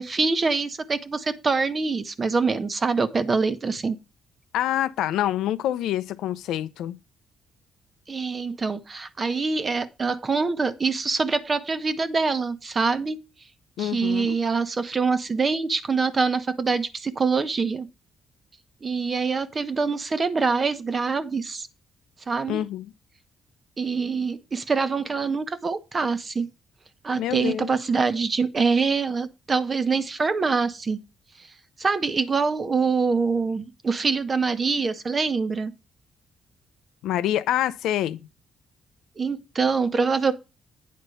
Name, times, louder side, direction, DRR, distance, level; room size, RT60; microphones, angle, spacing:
voice 1, 0.0-4.0 8.1-13.2 13.8-17.9 18.8-21.7 22.3-22.6 23.8-26.5 27.0-31.0 31.8-35.7 39.2-40.3, right 4 dB, 35° right, 1.0 m, -25 dB
voice 2, 4.5-7.0 13.8-14.4 22.5-22.9 27.2-27.7 37.0-38.2, left 12 dB, 85° left, 0.6 m, -26 dB
9.4 x 4.3 x 6.4 m
cardioid pair, 90°, 0 cm